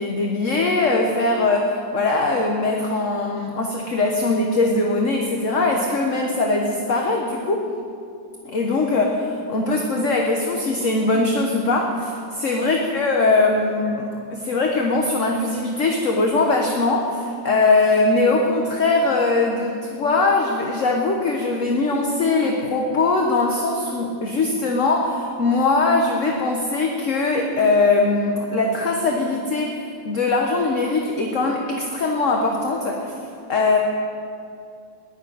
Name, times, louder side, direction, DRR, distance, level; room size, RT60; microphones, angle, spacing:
voice 1, 0.0-7.7 8.4-33.1 33.5-33.8, left 3 dB, 45° left, 1 dB, 1.4 m, -21 dB
19.0 x 7.5 x 9.4 m, 2.4 s
omnidirectional pair, 2.1 m